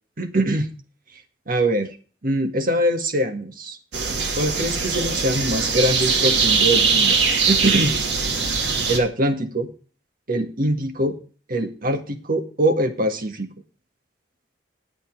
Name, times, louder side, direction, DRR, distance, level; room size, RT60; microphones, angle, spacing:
voice 1, 0.2-0.7 1.5-1.9 2.2-3.8 4.3-7.2 7.5-8.0 8.9-9.7 10.3-11.2 11.5-13.5, right 1 dB, 50° right, 6 dB, 1.7 m, -23 dB
sound 1, 3.9-9.0, right 5 dB, 70° right, 2.1 m, -21 dB
9.9 x 8.3 x 4.6 m, 0.37 s
head